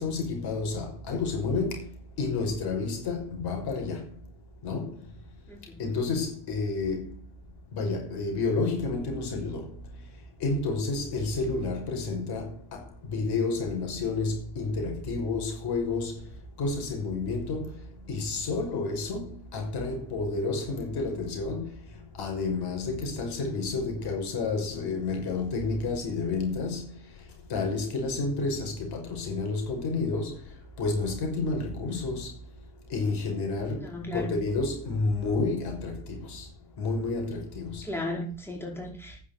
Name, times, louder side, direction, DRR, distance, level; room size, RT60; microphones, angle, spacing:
voice 1, 0.0-1.9 2.2-4.0 4.6-4.9 5.8-7.1 7.7-9.7 10.4-12.8 13.1-16.2 16.6-17.7 18.1-21.7 22.2-26.9 27.5-30.4 30.8-32.3 32.9-33.8 34.1-36.5 36.8-37.8, left 3 dB, 60° left, 5.9 m, -30 dB
voice 2, 5.5-5.8 33.8-34.4 37.8-39.2, left 1 dB, 5° left, 5.1 m, -35 dB
10.0 x 8.3 x 8.3 m
hypercardioid pair, 70°, 44 cm